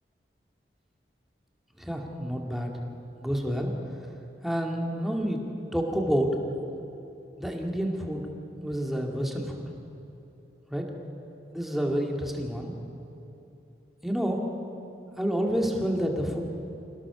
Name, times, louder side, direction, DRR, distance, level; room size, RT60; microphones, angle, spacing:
voice 1, 1.8-2.7 3.2-3.7 4.4-5.4 5.7-6.4 7.4-8.3 8.6-9.6 10.7-10.9 11.5-12.7 14.0-14.4 15.1-16.4, equal, ahead, 0 dB, 2.2 m, -28 dB
26.5 x 17.5 x 7.0 m, 3.0 s
head